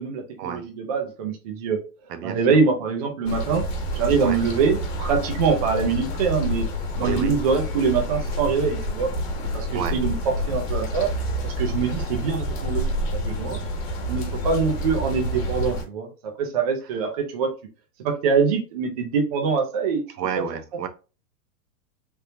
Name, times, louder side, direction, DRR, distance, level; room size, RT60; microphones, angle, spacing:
voice 1, 0.0-1.8 2.2-3.6 3.9-6.7 7.0-9.1 9.5-10.1 10.5-11.1 11.4-13.6 14.1-17.5 18.0-20.0 20.4-20.5, right 5 dB, 25° right, 0.4 m, -24 dB
voice 2, 2.1-2.6 4.2-4.4 7.0-7.3 9.7-10.0 20.2-20.9, right 8 dB, 75° right, 0.9 m, -30 dB
sound 1, 3.3-15.8, equal, 35° left, 1.3 m, -28 dB
3.5 x 2.7 x 2.7 m
hypercardioid pair, 150°, 48 cm